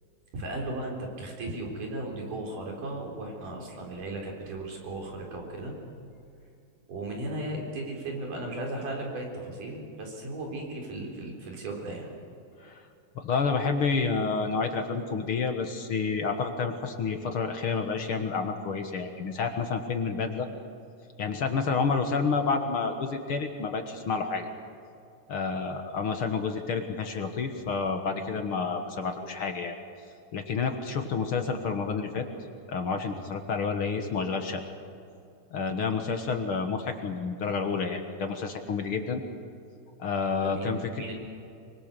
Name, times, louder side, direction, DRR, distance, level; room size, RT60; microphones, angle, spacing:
voice 1, 0.3-5.7 6.9-12.1 25.4-25.6 40.3-41.1, right 2 dB, 85° right, 1 dB, 5.6 m, -36 dB
voice 2, 13.2-20.5 21.2-24.5 25.3-29.8 30.3-32.3 32.7-34.6 35.5-39.2 40.0-40.8, left 5 dB, 50° left, 5 dB, 1.9 m, -29 dB
24.5 x 23.5 x 6.8 m, 2.6 s
omnidirectional pair, 3.6 m